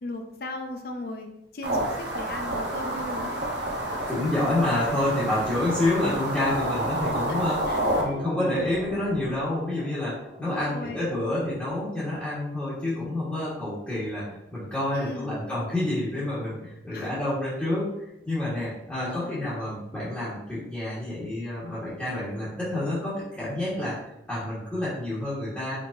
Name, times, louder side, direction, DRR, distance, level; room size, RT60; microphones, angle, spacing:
voice 1, 0.0-3.4 5.8-5.9 7.3-7.4 7.7-8.2 10.5-11.1 14.9-15.4 16.9-17.1 19.0-19.6, left 2 dB, 55° left, 4 dB, 0.5 m, -38 dB
sound 1, 1.6-8.0, right 1 dB, 75° right, 1.0 m, -29 dB
voice 2, 4.1-17.9 18.2-25.8, left 1 dB, 10° left, -11 dB, 1.4 m, -28 dB
sound 2, 7.1-12.9, equal, 35° right, 0.6 m, -43 dB
5.0 x 3.5 x 2.6 m, 0.86 s
head